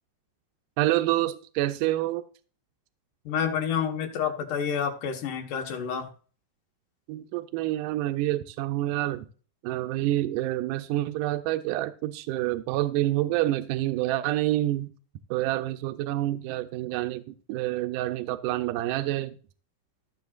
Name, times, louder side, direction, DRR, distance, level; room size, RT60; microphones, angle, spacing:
voice 1, 0.8-2.2 7.1-9.3 9.6-14.9 15.3-19.4, right 15 dB, 85° right, 9 dB, 2.1 m, -27 dB
voice 2, 3.3-6.1, left 7 dB, 80° left, 4 dB, 3.0 m, -29 dB
14.5 x 7.6 x 2.5 m, 0.39 s
omnidirectional pair, 3.7 m